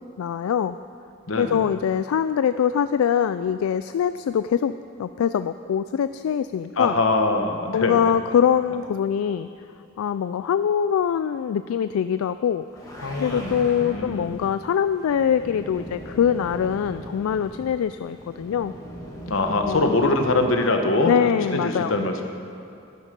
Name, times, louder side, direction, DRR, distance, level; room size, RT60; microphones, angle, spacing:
voice 1, 0.2-0.8 1.4-4.7 5.0-7.0 7.7-9.5 10.0-12.6 13.2-18.7 19.7-20.0 21.1-22.0, left 8 dB, 90° left, 12 dB, 0.3 m, -23 dB
voice 2, 1.3-1.6 6.8-8.0 13.0-14.3 19.3-22.2, left 2 dB, 75° left, 5 dB, 1.1 m, -23 dB
sound 1, 12.6-20.4, right 1 dB, 15° left, 2.1 m, -40 dB
11.0 x 11.0 x 5.2 m, 2.6 s
head